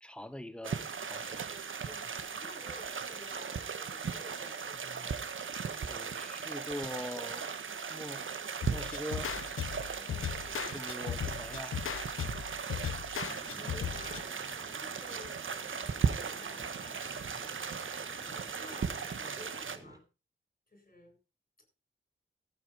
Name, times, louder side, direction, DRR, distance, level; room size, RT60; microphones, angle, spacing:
voice 1, 0.0-1.4 5.9-7.5 7.9-8.3 8.7-9.3 10.7-11.8, equal, 5° left, 1.6 m, -42 dB
sound 1, 0.6-19.8, right 6 dB, 75° right, 1.5 m, -37 dB
voice 2, 1.8-5.2 9.9-10.7 12.2-12.7 13.1-14.3 14.8-20.1 20.7-21.2, left 1 dB, 45° left, 7.2 m, -53 dB
sound 2, 8.6-14.2, left 9 dB, 90° left, 0.7 m, -38 dB
sound 3, 13.3-20.0, right 1 dB, 20° right, 3.3 m, -54 dB
15.0 x 8.7 x 5.2 m
wide cardioid pair, 70°, 20 cm